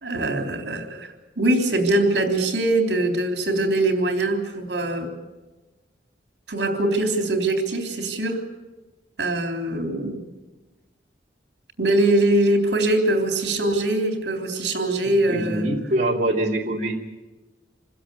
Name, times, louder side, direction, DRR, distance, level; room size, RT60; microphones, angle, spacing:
voice 1, 0.0-5.2 6.5-8.5 9.2-10.2 11.8-15.7, right 1 dB, 70° right, 4 dB, 3.6 m, -22 dB
voice 2, 15.3-17.0, right 1 dB, 45° right, -2 dB, 3.2 m, -23 dB
27.0 x 16.0 x 8.4 m, 1.2 s
head